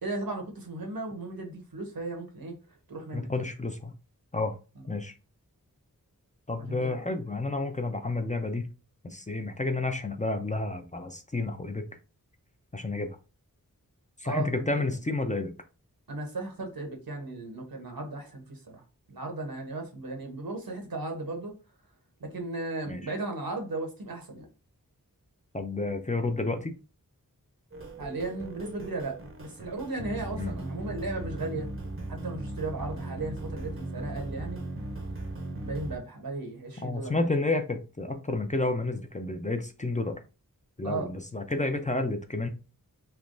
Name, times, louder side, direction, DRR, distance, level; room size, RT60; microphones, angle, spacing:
voice 1, 0.0-3.3 4.8-4.9 6.6-7.1 14.2-14.9 16.1-21.6 22.2-24.5 28.0-31.7 32.1-34.6 35.6-37.2 40.8-41.1, right 2 dB, 80° right, 3 dB, 1.1 m, -36 dB
voice 2, 3.1-3.9 4.3-4.5 4.9-5.1 6.5-8.7 9.0-11.8 12.7-13.1 14.2-15.5 22.9-23.0 25.5-26.7 30.4-30.5 36.8-40.2 40.8-42.5, left 2 dB, 20° left, 5 dB, 0.5 m, -30 dB
sound 1, 27.7-36.0, right 2 dB, 40° right, 0.7 m, -38 dB
3.3 x 2.9 x 2.6 m, 0.32 s
wide cardioid pair, 55°, 35 cm